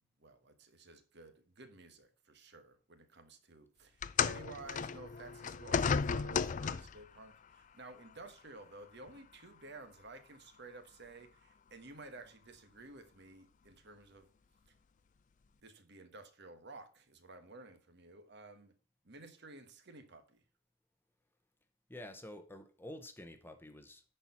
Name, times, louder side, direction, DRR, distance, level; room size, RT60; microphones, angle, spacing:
voice 1, 0.2-14.3 15.6-18.7 19.0-20.4, right 3 dB, 55° right, 1.3 m, -53 dB
sound 1, 4.0-7.1 8.1-8.2 9.1-9.2, left 6 dB, 40° left, 0.4 m, -34 dB
voice 2, 21.9-24.0, left 1 dB, 10° left, 0.8 m, -49 dB
10.0 x 4.5 x 5.5 m
head